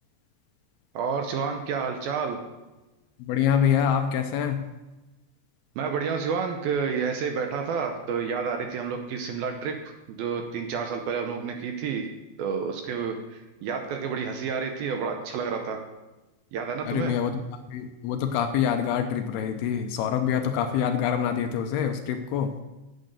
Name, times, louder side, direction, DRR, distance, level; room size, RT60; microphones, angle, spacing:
voice 1, 1.0-2.4 5.8-9.8 10.1-12.1 12.4-15.8 16.5-17.1, right 6 dB, 75° right, 4 dB, 2.3 m, -29 dB
voice 2, 3.2-4.6 16.9-22.6, left 8 dB, 80° left, 6 dB, 2.5 m, -26 dB
9.2 x 7.6 x 6.7 m, 1.1 s
omnidirectional pair, 4.9 m